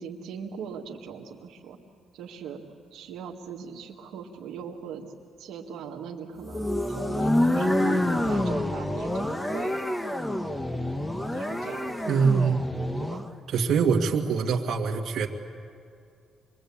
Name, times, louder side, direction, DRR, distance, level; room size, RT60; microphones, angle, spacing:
voice 1, 0.0-1.8 2.1-2.6 2.9-5.1 5.4-7.7 8.3-9.7 11.3-12.1 13.0-13.2, right 7 dB, 85° right, -1 dB, 2.0 m, -40 dB
sound 1, 6.4-13.3, left 1 dB, 10° left, 1.5 m, -27 dB
voice 2, 12.1-12.7 13.5-15.3, right 5 dB, 65° right, 2 dB, 2.3 m, -24 dB
25.5 x 23.0 x 8.8 m, 2.4 s
cardioid pair, 90°, 0 cm